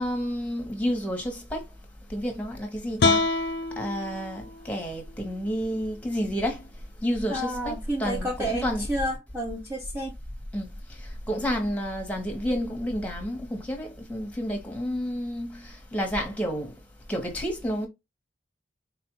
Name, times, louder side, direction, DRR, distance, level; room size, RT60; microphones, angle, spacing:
voice 1, 0.0-1.6 2.1-3.2 3.8-6.6 7.0-8.9 10.5-10.7 11.3-16.7 17.1-17.9, equal, 5° left, 1.0 m, -30 dB
sound 1, 3.0-6.2, left 3 dB, 60° left, 0.5 m, -28 dB
voice 2, 7.3-10.1, right 1 dB, 10° right, 0.7 m, -30 dB
4.1 x 2.4 x 2.9 m
head